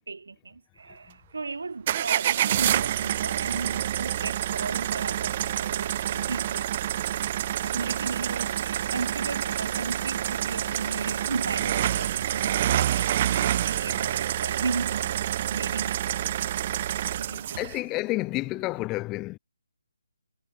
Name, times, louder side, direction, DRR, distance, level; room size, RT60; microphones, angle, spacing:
voice 1, 0.1-6.7 7.6-15.2 15.5-16.0 16.8-16.9 17.2-17.6, right 4 dB, 70° right, 1.0 m, -35 dB
sound 1, 1.9-17.8, right 12 dB, 30° right, 1.1 m, -27 dB
voice 2, 17.3-19.4, left 20 dB, 15° left, 0.9 m, -30 dB
hypercardioid pair, 165°, 0 cm